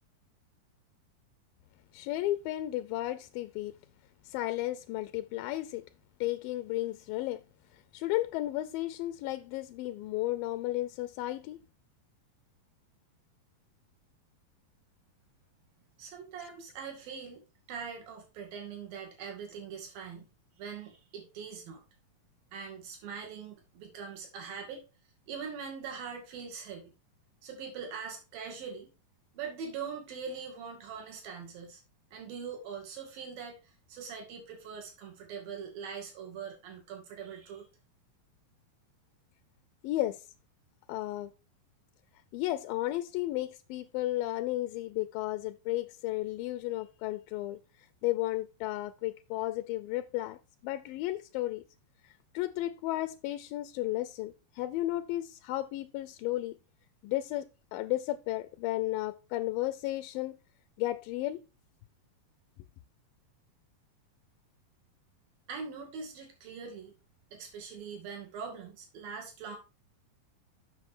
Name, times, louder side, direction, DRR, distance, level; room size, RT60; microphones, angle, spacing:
voice 1, 1.9-3.8 4.3-5.8 6.2-7.4 7.9-11.6 16.4-16.5 39.8-40.3 40.9-41.3 42.3-47.6 48.0-51.6 52.0-56.6 57.0-60.4 60.8-61.4, left 16 dB, 80° left, 2.2 m, -33 dB
voice 2, 16.0-17.4 17.7-20.3 20.6-21.8 22.5-24.8 25.3-26.9 27.4-28.9 29.3-31.8 32.1-33.6 33.9-37.7 65.5-66.9 67.3-69.6, right 6 dB, 75° right, 4.0 m, -42 dB
8.2 x 6.4 x 4.8 m
omnidirectional pair, 4.1 m